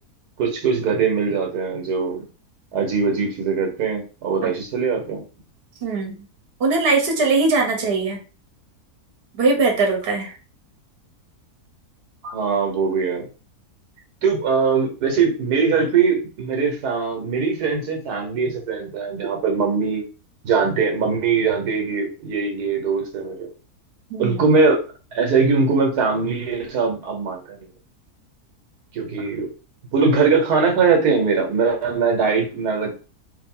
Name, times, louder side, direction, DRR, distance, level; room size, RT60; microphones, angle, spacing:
voice 1, 0.4-2.2 2.7-5.2 12.3-13.3 14.2-20.0 20.4-23.5 24.2-24.8 25.1-27.7 28.9-29.5 29.9-32.9, right 5 dB, 80° right, 2 dB, 1.5 m, -21 dB
voice 2, 5.8-6.2 6.6-8.2 9.3-10.4 12.2-12.4 24.1-24.5, right 3 dB, 45° right, 1 dB, 1.2 m, -21 dB
3.5 x 2.8 x 3.7 m, 0.35 s
omnidirectional pair, 1.6 m